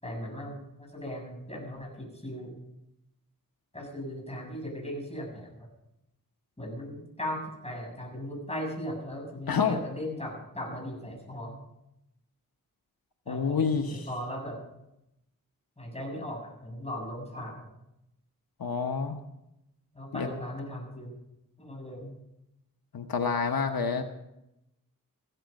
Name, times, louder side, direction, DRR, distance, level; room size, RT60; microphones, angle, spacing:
voice 1, 0.0-2.6 3.7-5.7 6.6-11.6 13.3-14.6 15.8-17.6 19.9-21.2 21.6-22.1, equal, 20° left, -1 dB, 7.3 m, -38 dB
voice 2, 9.5-9.8 13.3-14.1 18.6-19.2 20.1-20.3 22.9-24.0, left 6 dB, 85° left, 6 dB, 1.1 m, -28 dB
15.5 x 14.0 x 5.3 m, 0.86 s
wide cardioid pair, 55°, 35 cm